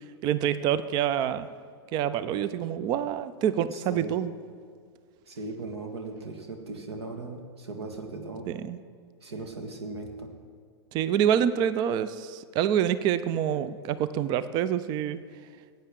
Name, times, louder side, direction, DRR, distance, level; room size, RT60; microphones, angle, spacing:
voice 1, 0.2-1.5 1.9-4.3 8.5-8.8 10.9-15.2, right 9 dB, 30° right, 14 dB, 0.4 m, -26 dB
voice 2, 3.7-4.2 5.3-8.6 9.2-10.3, right 3 dB, 65° right, 5 dB, 1.7 m, -38 dB
17.5 x 8.9 x 3.7 m, 2.1 s
figure-of-eight pair, 100°, 15 cm